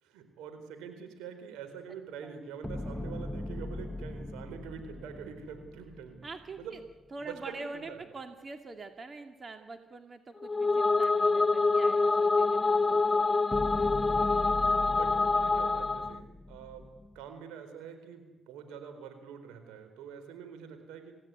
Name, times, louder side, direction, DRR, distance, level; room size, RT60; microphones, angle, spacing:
voice 1, 0.0-6.2 6.6-6.8 7.2-8.0 13.9-14.4 14.7-16.9 17.1-21.1, right 7 dB, 85° right, 7 dB, 4.4 m, -45 dB
sound 1, 2.6-6.9 13.5-17.3, left 1 dB, 10° left, 1.8 m, -40 dB
voice 2, 6.2-6.8 7.1-13.2, right 3 dB, 45° right, 6 dB, 2.4 m, -45 dB
sound 2, 10.4-16.2, left 3 dB, 25° left, 1.0 m, -26 dB
27.0 x 16.5 x 9.6 m, 1.1 s
hypercardioid pair, 45°, 0 cm